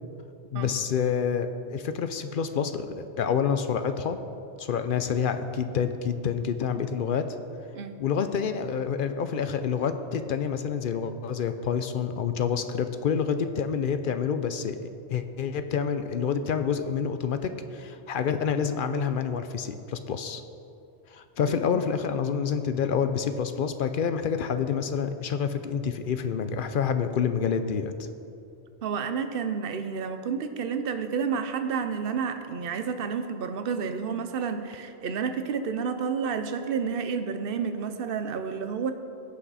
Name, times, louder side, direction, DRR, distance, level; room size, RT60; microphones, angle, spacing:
voice 1, 0.5-4.2 4.6-7.4 8.0-20.4 21.1-27.9, left 7 dB, 60° left, 9 dB, 0.6 m, -28 dB
voice 2, 28.8-38.9, right 6 dB, 60° right, 9 dB, 0.8 m, -30 dB
17.0 x 5.8 x 4.1 m, 2.7 s
omnidirectional pair, 1.2 m